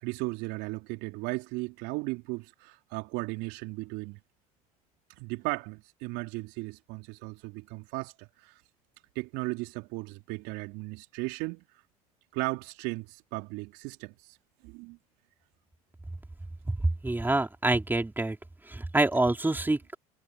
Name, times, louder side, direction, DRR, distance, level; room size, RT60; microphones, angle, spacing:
voice 1, 0.0-4.2 5.2-8.6 9.2-11.6 12.3-14.4 14.6-15.0, right 24 dB, 65° right, 3.7 m, -36 dB
voice 2, 17.0-18.4 18.7-20.0, right 2 dB, 10° right, 3.9 m, -26 dB
hypercardioid pair, 70°, 19 cm